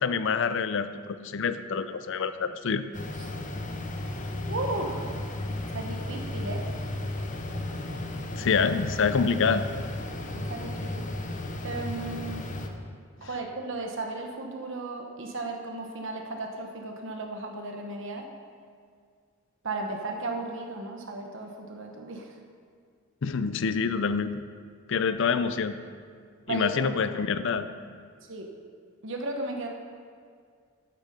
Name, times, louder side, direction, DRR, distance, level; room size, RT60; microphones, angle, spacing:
voice 1, 0.0-2.8 8.4-9.6 23.2-24.4 24.9-25.8 26.5-27.7, left 5 dB, 60° left, 12 dB, 0.5 m, -26 dB
sound 1, 2.9-12.7, left 1 dB, 35° left, 0.8 m, -34 dB
voice 2, 4.5-5.0 5.7-6.6 10.3-11.1 11.6-12.4 13.2-18.2 19.6-22.3 26.5-26.9 28.3-28.5 29.0-29.7, right 2 dB, 60° right, 2 dB, 1.2 m, -35 dB
10.5 x 8.2 x 5.2 m, 2.1 s
head